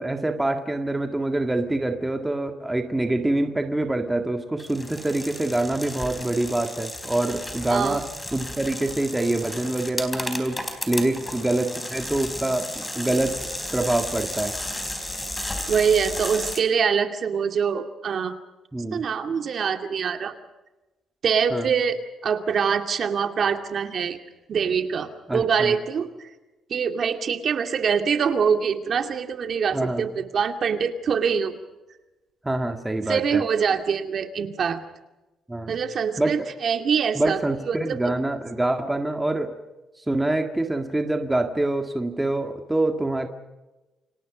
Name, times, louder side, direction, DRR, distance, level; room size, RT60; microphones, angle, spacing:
voice 1, 0.0-13.4 13.7-14.6 18.7-19.0 21.5-21.7 25.3-25.7 29.7-30.1 32.4-33.4 35.5-35.8 36.2-36.4 37.1-39.5 40.0-43.3, right 2 dB, 10° right, 5 dB, 1.9 m, -25 dB
sound 1, 4.6-16.6, left 1 dB, 10° left, 4.1 m, -33 dB
voice 2, 7.7-8.0 15.7-18.3 18.9-20.3 21.2-24.2 24.5-26.3 26.7-31.5 33.1-34.8 35.7-37.4 37.7-38.0, right 6 dB, 45° right, 6 dB, 2.5 m, -24 dB
29.5 x 26.5 x 5.2 m, 1.1 s
cardioid pair, 145°, 0 cm